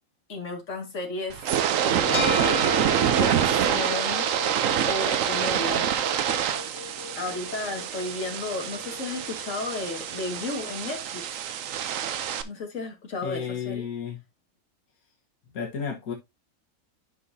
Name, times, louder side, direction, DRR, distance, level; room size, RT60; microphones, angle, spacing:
voice 1, 0.3-1.4 1.8-2.8 3.2-4.3 4.9-5.9 7.2-11.2 12.4-13.9, left 3 dB, 60° left, 2.3 m, -33 dB
sound 1, 1.3-12.4, right 9 dB, 70° right, 1.1 m, -26 dB
sound 2, 2.1-10.7, left 6 dB, 20° left, 1.1 m, -37 dB
voice 2, 13.2-14.2 15.5-16.1, left 7 dB, 85° left, 1.7 m, -32 dB
10.5 x 5.5 x 2.7 m
omnidirectional pair, 1.5 m